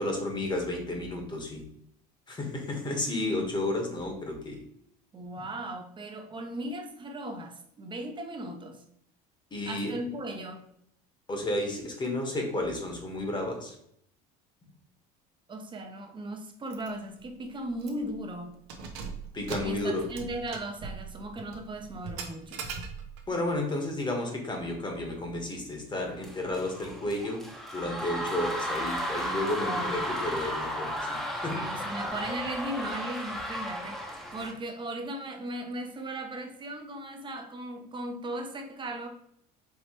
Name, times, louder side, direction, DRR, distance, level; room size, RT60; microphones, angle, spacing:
voice 1, 0.0-1.6 2.3-4.6 9.5-10.0 11.3-13.7 19.3-20.1 23.3-27.5 27.7-31.9, left 1 dB, 25° left, 2 dB, 1.2 m, -32 dB
voice 2, 5.1-8.8 9.7-10.6 15.5-18.6 19.6-22.7 29.6-29.9 31.5-39.1, right 1 dB, 25° right, 4 dB, 0.8 m, -37 dB
Keys jangling, 16.7-16.9 17.2-17.3 17.8-18.1 18.6-23.3, right 5 dB, 85° right, 0.8 m, -40 dB
sound 1, 26.2-34.5, equal, ahead, 0.9 m, -34 dB
4.7 x 3.0 x 2.9 m, 0.71 s
supercardioid pair, 105°, 19 cm